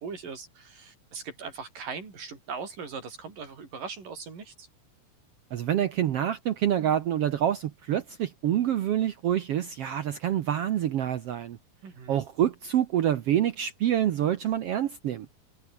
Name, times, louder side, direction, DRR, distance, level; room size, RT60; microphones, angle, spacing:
voice 1, 0.0-4.7 11.8-12.2, right 5 dB, 85° right, 6.8 m, -40 dB
voice 2, 5.5-11.6 12.1-15.3, right 10 dB, 65° right, 1.6 m, -27 dB
omnidirectional pair, 3.8 m